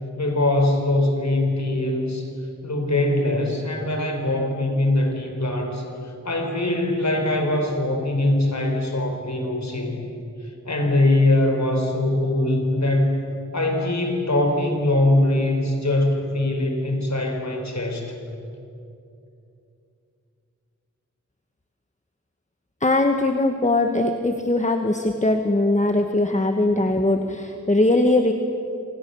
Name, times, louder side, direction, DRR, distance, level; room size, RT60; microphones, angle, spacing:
voice 1, 0.2-2.3 2.6-10.0 10.6-13.2 13.5-18.1, left 1 dB, 60° left, 3 dB, 4.8 m, -22 dB
voice 2, 22.8-28.3, left 2 dB, 25° left, 5 dB, 1.5 m, -20 dB
27.0 x 27.0 x 7.1 m, 2.7 s
wide cardioid pair, 75°, 31 cm